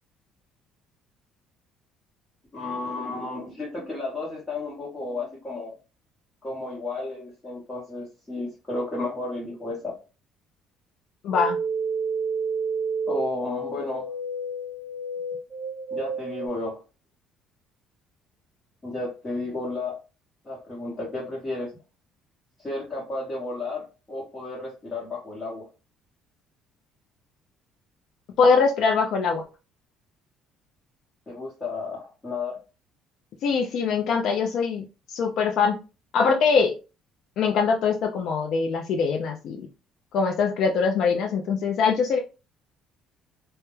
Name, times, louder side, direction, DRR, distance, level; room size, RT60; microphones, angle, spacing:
voice 1, 2.5-5.7 6.4-9.9 13.1-14.1 15.9-16.8 18.8-19.9 20.4-21.7 22.6-25.6 31.3-32.5, left 2 dB, 20° left, -6 dB, 0.9 m, -32 dB
voice 2, 11.2-11.6 28.4-29.4 33.4-35.8 36.1-36.7 37.4-39.7 40.1-42.2, left 5 dB, 55° left, 2 dB, 0.3 m, -23 dB
sound 1, 11.3-16.5, right 4 dB, 20° right, 0.4 m, -30 dB
2.2 x 2.1 x 3.0 m, 0.31 s
cardioid pair, 155°, 0 cm